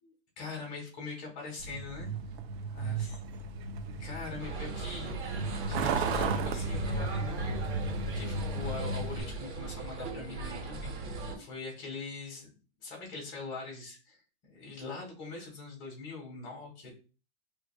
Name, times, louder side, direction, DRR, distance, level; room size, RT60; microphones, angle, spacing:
voice 1, 0.0-2.1 2.7-3.2 4.0-12.5 12.8-14.2 14.5-16.9, left 4 dB, 45° left, -1 dB, 2.2 m, -43 dB
Truck, 1.6-9.2, right 3 dB, 65° right, 0.7 m, -34 dB
sound 1, 4.4-11.4, right 3 dB, 45° right, 1.4 m, -39 dB
5.9 x 2.9 x 2.3 m, 0.35 s
supercardioid pair, 175°, 33 cm